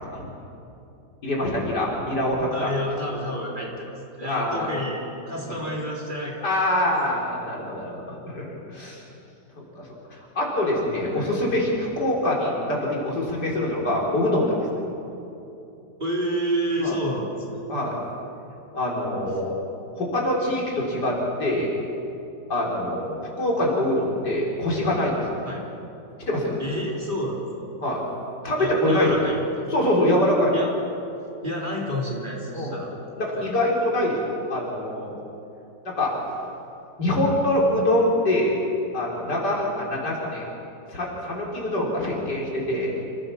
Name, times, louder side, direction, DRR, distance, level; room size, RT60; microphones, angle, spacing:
voice 1, 1.2-2.7 4.2-4.7 5.5-5.6 6.4-9.0 9.6-14.5 16.8-17.0 17.7-18.0 18.7-19.6 20.0-21.7 22.5-25.3 26.3-26.6 27.8-28.0 28.4-29.2 29.7-30.5 32.5-32.8 33.2-35.1 35.8-36.2 37.0-38.6 38.9-40.5 40.9-42.9, left 1 dB, 70° left, -3 dB, 4.8 m, -24 dB
voice 2, 2.5-6.4 11.1-11.4 16.0-17.6 25.5-25.6 26.6-27.7 28.6-29.4 30.5-30.7 31.4-32.9 33.4-33.5, equal, 25° right, -3 dB, 3.8 m, -29 dB
27.5 x 16.0 x 7.1 m, 2.8 s
omnidirectional pair, 1.9 m